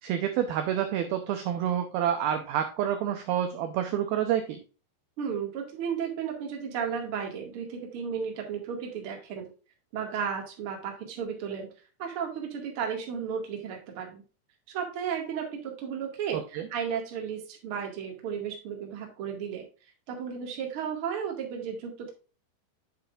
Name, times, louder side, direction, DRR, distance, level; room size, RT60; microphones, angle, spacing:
voice 1, 0.0-4.6 16.5-16.6, right 10 dB, 75° right, 7 dB, 2.3 m, -28 dB
voice 2, 5.2-9.5 9.9-11.7 12.0-14.2 14.7-19.6 20.1-22.1, right 7 dB, 45° right, 1 dB, 1.9 m, -34 dB
8.5 x 7.5 x 2.5 m, 0.34 s
omnidirectional pair, 5.1 m